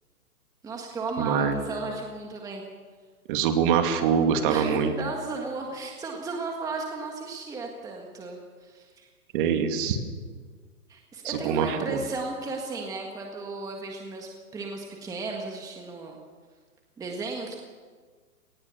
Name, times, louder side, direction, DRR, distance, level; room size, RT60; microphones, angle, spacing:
voice 1, 0.6-2.6 4.5-9.1 10.9-16.2 17.0-17.6, right 3 dB, 10° right, 1 dB, 1.6 m, -35 dB
voice 2, 1.2-1.6 3.3-4.9 9.3-10.0 11.2-12.0, right 7 dB, 35° right, 6 dB, 2.4 m, -24 dB
25.5 x 19.5 x 7.0 m, 1.5 s
hypercardioid pair, 150°, 46 cm